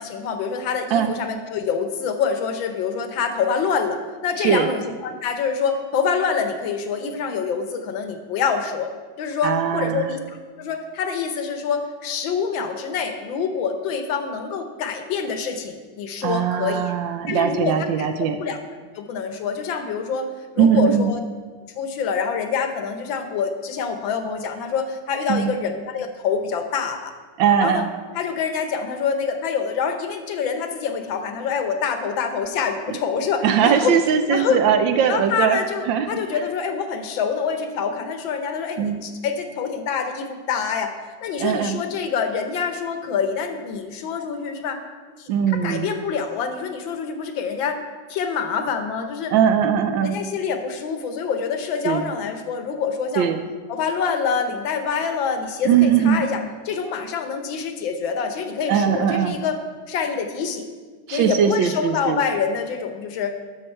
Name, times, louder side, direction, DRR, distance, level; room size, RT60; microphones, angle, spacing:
voice 1, 0.0-8.9 9.2-16.9 17.3-18.1 18.4-18.6 18.9-20.3 20.5-21.2 21.8-27.1 27.6-27.8 28.1-34.0 34.3-34.6 35.1-40.9 41.2-44.8 45.2-45.3 45.6-47.8 48.1-49.3 50.0-53.3 53.7-56.4 56.6-59.6 59.9-60.6 61.1-63.4, left 6 dB, 70° left, 7 dB, 1.5 m, -26 dB
voice 2, 9.4-10.1 16.2-18.4 20.6-21.1 25.3-25.5 27.4-27.9 32.9-33.0 33.4-35.6 35.9-36.2 38.8-39.0 41.4-41.8 45.3-45.9 49.3-50.2 51.8-52.1 53.2-53.4 55.6-56.2 58.7-59.3 61.1-62.2, right 8 dB, 75° right, 8 dB, 1.2 m, -20 dB
12.0 x 6.6 x 4.4 m, 1.4 s
omnidirectional pair, 2.3 m